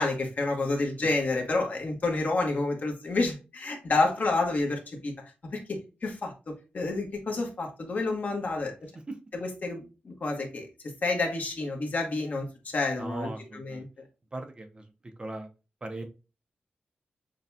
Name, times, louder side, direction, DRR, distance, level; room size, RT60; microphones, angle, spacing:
voice 1, 0.0-5.1 5.5-6.3 6.7-8.7 9.3-10.7 11.0-13.9, left 3 dB, 50° left, 2 dB, 1.2 m, -29 dB
voice 2, 13.0-13.8 14.3-14.8 15.2-15.5 15.8-16.0, right 2 dB, 25° right, 5 dB, 0.6 m, -38 dB
6.5 x 2.3 x 2.7 m, 0.30 s
wide cardioid pair, 120°, 4 cm